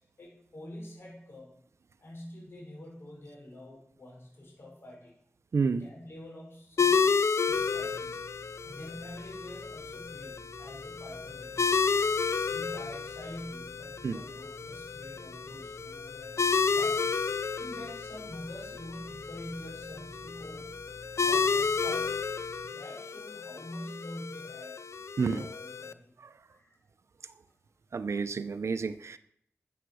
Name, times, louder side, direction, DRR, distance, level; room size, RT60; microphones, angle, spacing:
voice 1, 0.2-1.5 2.0-5.1 5.7-7.2 7.4-8.2 8.6-11.9 12.5-16.4 16.7-17.2 17.6-20.8 21.2-22.2 22.6-24.8 25.3-26.1 26.5-26.8, left 1 dB, 60° left, -2 dB, 6.0 m, -46 dB
voice 2, 5.5-5.8 14.0-14.2 25.2-25.5 27.9-29.2, right 5 dB, 80° right, 11 dB, 0.7 m, -29 dB
sound 1, 6.8-25.9, left 5 dB, 85° left, 0.5 m, -31 dB
sound 2, 7.4-22.7, right 2 dB, 45° right, 4.3 m, -53 dB
13.0 x 8.1 x 6.3 m, 0.68 s
wide cardioid pair, 90°, 5 cm